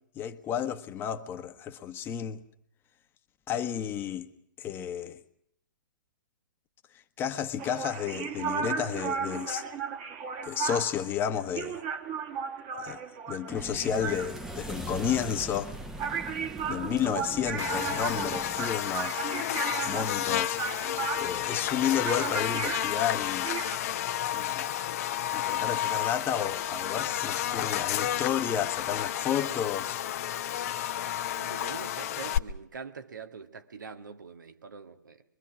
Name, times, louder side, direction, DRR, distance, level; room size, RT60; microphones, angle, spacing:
voice 1, 0.1-2.4 3.5-4.3 4.6-5.2 7.2-9.6 10.4-11.8 12.8-13.0 13.3-15.7 16.7-19.2 19.9-20.6 20.9-23.5 24.3-24.7 25.3-30.0, left 9 dB, 20° left, 1.3 m, -31 dB
sound 1, 7.6-23.8, right 6 dB, 30° right, 2.1 m, -35 dB
sound 2, 13.5-18.8, right 2 dB, 5° right, 1.1 m, -41 dB
Buzz, 17.6-32.4, left 11 dB, 45° left, 0.9 m, -31 dB
voice 2, 31.3-35.2, right 5 dB, 70° right, 2.1 m, -44 dB
24.0 x 22.5 x 6.2 m
figure-of-eight pair, 120°, 11 cm